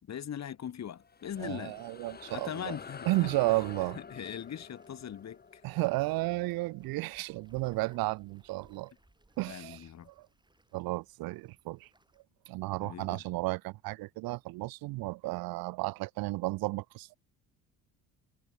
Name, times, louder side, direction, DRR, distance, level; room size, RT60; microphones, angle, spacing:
voice 1, 0.0-1.8 2.3-3.3 4.1-5.6 9.5-10.1 12.8-13.2, left 9 dB, 45° left, 2.7 m, -40 dB
sound 1, 0.9-7.7, left 5 dB, 25° left, 2.0 m, -49 dB
sound 2, 1.2-12.2, right 2 dB, 10° right, 6.6 m, -66 dB
voice 2, 1.4-2.8 3.0-4.0 5.6-8.9 9.4-10.3 10.7-11.9 12.5-17.2, right 21 dB, 65° right, 0.8 m, -33 dB
supercardioid pair, 80°, 38 cm